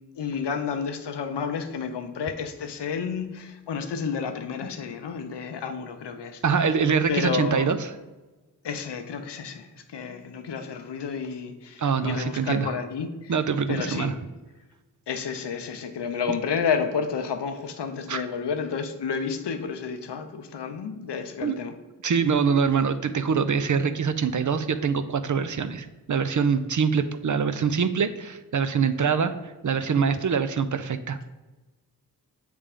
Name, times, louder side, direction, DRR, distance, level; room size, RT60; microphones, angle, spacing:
voice 1, 0.2-6.4 7.1-7.7 8.6-13.4 13.7-14.2 15.1-21.7, left 6 dB, 80° left, 7 dB, 0.7 m, -31 dB
voice 2, 6.4-7.9 11.8-12.7 13.3-14.1 18.1-18.2 21.4-21.6 22.0-31.3, right 6 dB, 50° right, 10 dB, 0.6 m, -24 dB
7.4 x 3.4 x 4.9 m, 1.2 s
cardioid pair, 40°, 40 cm